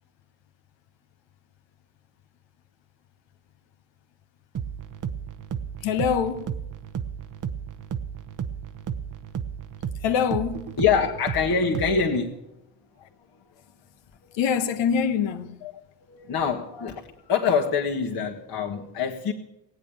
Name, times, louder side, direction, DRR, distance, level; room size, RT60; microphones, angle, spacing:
sound 1, 4.5-12.2, right 8 dB, 40° right, 1.0 m, -33 dB
voice 1, 5.8-6.4 10.0-10.7 14.4-15.6, left 7 dB, 70° left, 1.4 m, -24 dB
voice 2, 10.8-12.4 14.2-14.4 15.6-15.7 16.1-19.3, left 6 dB, 50° left, 1.8 m, -25 dB
17.5 x 8.9 x 8.5 m
hypercardioid pair, 55°, 47 cm